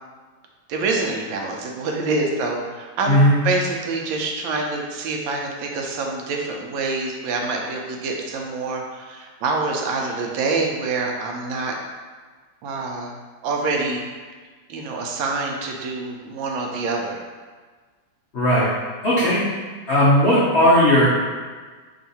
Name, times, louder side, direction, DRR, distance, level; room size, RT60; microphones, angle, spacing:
voice 1, 0.7-11.7 12.6-13.1 13.4-14.1 14.7-17.2, right 3 dB, 75° right, 1 dB, 1.3 m, -26 dB
voice 2, 3.1-3.4 18.3-18.7 19.0-19.4 19.9-21.1, equal, 60° left, -11 dB, 0.6 m, -16 dB
3.6 x 2.5 x 4.1 m, 1.4 s
omnidirectional pair, 2.3 m